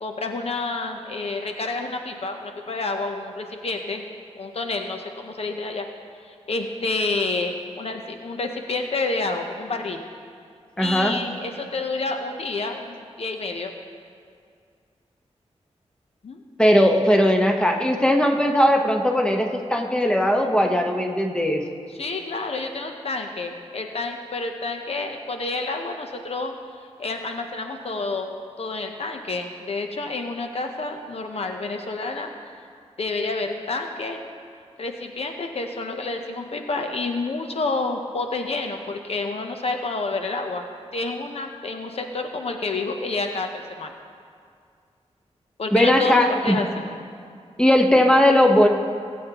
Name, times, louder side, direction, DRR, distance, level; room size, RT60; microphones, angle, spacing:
voice 1, 0.0-4.0 4.4-5.8 6.2-10.0 10.8-13.7 16.2-16.4 21.9-26.5 26.8-28.3 28.6-32.3 33.0-34.2 34.8-40.7 40.9-43.9 45.6-46.9, left 3 dB, 60° left, 4 dB, 0.8 m, -29 dB
voice 2, 10.8-11.2 16.6-21.6 45.7-46.6 47.6-48.7, equal, 10° left, 2 dB, 1.1 m, -18 dB
19.0 x 8.4 x 3.0 m, 2.2 s
cardioid pair, 75°, 12 cm